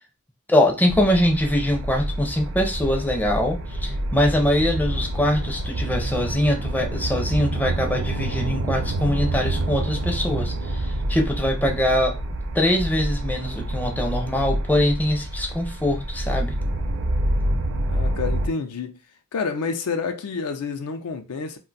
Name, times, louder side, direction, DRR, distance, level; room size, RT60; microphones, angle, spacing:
voice 1, 0.5-12.2 12.5-16.5, left 1 dB, 10° left, 0.4 m, -23 dB
sound 1, 0.9-18.5, right 1 dB, 55° right, 0.5 m, -27 dB
voice 2, 17.9-19.0 19.3-21.6, left 5 dB, 80° left, 0.4 m, -28 dB
2.5 x 2.2 x 3.9 m
head